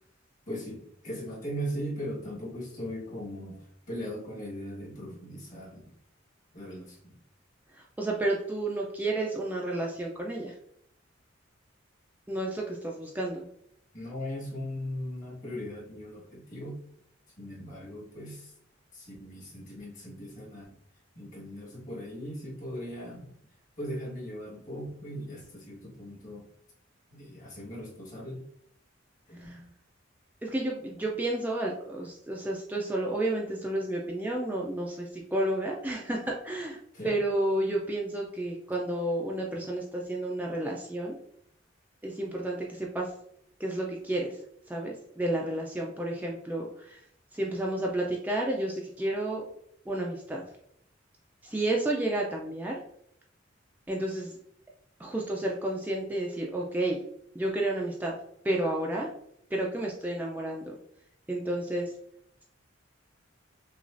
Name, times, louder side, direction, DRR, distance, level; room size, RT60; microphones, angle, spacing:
voice 1, 0.5-5.9 6.5-7.2 13.9-16.8 17.4-18.5 18.9-20.7 21.1-23.3 23.8-26.5 27.1-28.5 29.3-29.7 36.9-37.1, equal, 40° left, -5 dB, 1.6 m, -39 dB
voice 2, 7.7-10.5 12.3-13.4 29.4-29.6 30.4-36.8 37.0-41.1 42.0-43.1 43.6-44.4 44.7-47.0 47.3-49.4 49.9-50.4 51.4-52.8 53.9-54.3 55.0-57.0 57.3-58.1 58.4-59.1 59.5-60.7 61.3-61.9, right 1 dB, 10° right, -2 dB, 0.4 m, -31 dB
6.1 x 2.4 x 2.5 m, 0.71 s
head